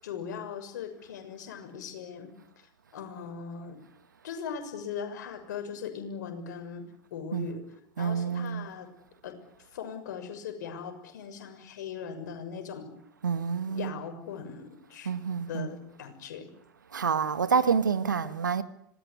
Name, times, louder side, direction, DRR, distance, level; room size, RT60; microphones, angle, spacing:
voice 1, 0.0-2.3 2.9-3.8 4.2-7.7 8.0-8.9 9.2-9.3 9.7-12.9 13.7-15.1 15.5-16.5 18.2-18.3, left 7 dB, 70° left, 6.6 m, -39 dB
voice 2, 8.0-8.7 13.2-14.0 15.0-15.8 16.9-18.6, right 6 dB, 85° right, 1.8 m, -28 dB
26.5 x 20.0 x 9.6 m
hypercardioid pair, 80°, 10 cm